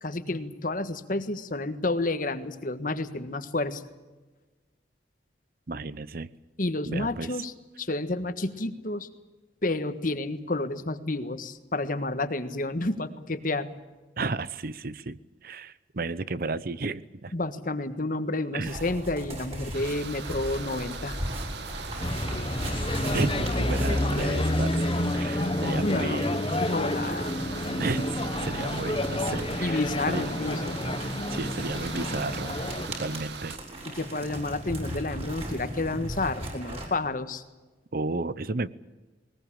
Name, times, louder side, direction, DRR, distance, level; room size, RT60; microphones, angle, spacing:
voice 1, 0.0-3.8 6.6-9.1 9.6-13.7 17.3-21.2 25.6-27.3 29.6-30.8 33.8-37.4, left 2 dB, 50° left, 10 dB, 1.6 m, -30 dB
voice 2, 5.7-6.3 6.9-7.3 14.2-17.3 18.5-18.8 23.1-24.7 25.1-26.3 27.8-29.8 30.1-30.3 31.3-32.5 32.9-33.6 37.9-38.7, right 3 dB, 55° right, 17 dB, 0.7 m, -33 dB
sound 1, 18.6-25.2 26.5-36.9, right 1 dB, 35° right, 6.5 m, -38 dB
sound 2, 19.7-33.6, right 5 dB, 75° right, 1.6 m, -40 dB
sound 3, 22.0-32.9, left 1 dB, 30° left, 1.3 m, -29 dB
21.0 x 20.0 x 8.8 m, 1.2 s
head